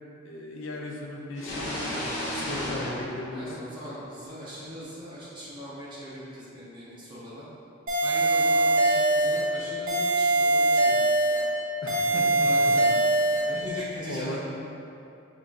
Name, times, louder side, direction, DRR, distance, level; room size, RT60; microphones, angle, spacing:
voice 1, 0.2-3.6 11.8-12.7 13.5-13.6 14.1-14.4, left 1 dB, 70° left, -1 dB, 0.5 m, -37 dB
sound 1, 1.3-4.2, equal, 35° left, 1.0 m, -34 dB
voice 2, 3.3-7.5 8.0-11.1 12.1-13.1 13.5-14.4, equal, 25° right, -10 dB, 1.1 m, -40 dB
sound 2, 7.9-9.5 9.9-11.5 11.9-13.5, right 2 dB, 40° right, 0.8 m, -22 dB
6.6 x 2.3 x 2.5 m, 2.7 s
head